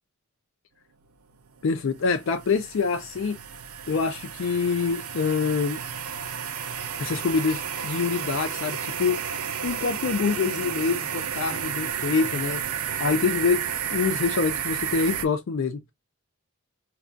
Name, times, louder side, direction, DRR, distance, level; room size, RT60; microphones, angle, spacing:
sound 1, 1.4-15.3, right 8 dB, 75° right, 0.4 m, -32 dB
voice 1, 1.6-3.4 3.9-5.8 7.0-9.2 9.6-12.6 13.0-15.8, left 5 dB, 60° left, 0.3 m, -25 dB
2.3 x 2.3 x 3.6 m
head